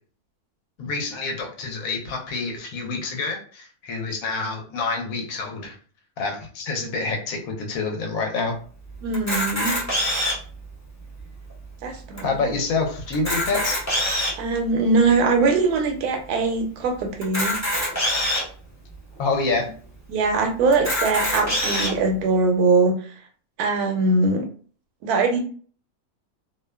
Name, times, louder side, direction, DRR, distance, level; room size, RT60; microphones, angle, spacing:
voice 1, 0.8-5.8 6.2-8.6 12.2-13.8 19.2-19.7, left 3 dB, 70° left, 1 dB, 1.1 m, -27 dB
voice 2, 9.0-9.7 11.8-12.4 14.4-17.6 20.1-23.0 23.6-24.5 25.0-25.4, right 3 dB, 90° right, 4 dB, 1.1 m, -21 dB
Camera, 9.1-10.5 11.2-11.3 11.5-11.6 12.2-12.3 13.1-14.4 15.1-15.2 17.2-18.4 19.2-19.3 19.5-19.6 20.7-21.9, left 1 dB, 20° left, 0.5 m, -24 dB
2.7 x 2.1 x 2.2 m, 0.43 s
omnidirectional pair, 1.6 m